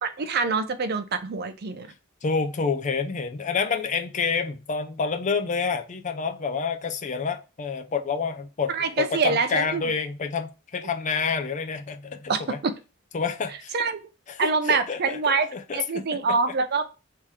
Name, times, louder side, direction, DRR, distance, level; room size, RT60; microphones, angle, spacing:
voice 1, 0.0-1.9 8.7-9.8 12.3-12.7 13.7-14.0 14.4-16.8, right 4 dB, 50° right, 0.5 m, -25 dB
voice 2, 2.2-8.7 9.0-12.6 13.1-13.7 14.3-16.0, left 5 dB, 35° left, 0.5 m, -28 dB
3.6 x 2.9 x 4.7 m
head